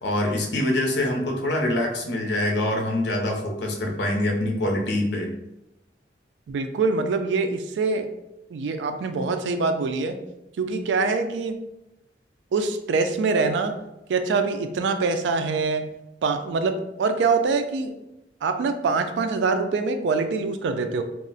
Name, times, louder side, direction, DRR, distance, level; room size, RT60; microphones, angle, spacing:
voice 1, 0.0-5.3, left 1 dB, 75° left, 2 dB, 0.6 m, -25 dB
voice 2, 6.5-8.1 8.5-10.2 10.6-11.6 12.5-13.8 14.1-15.9 16.2-18.0 18.4-21.0, right 4 dB, 90° right, 7 dB, 0.3 m, -24 dB
2.4 x 2.0 x 3.8 m, 0.91 s
head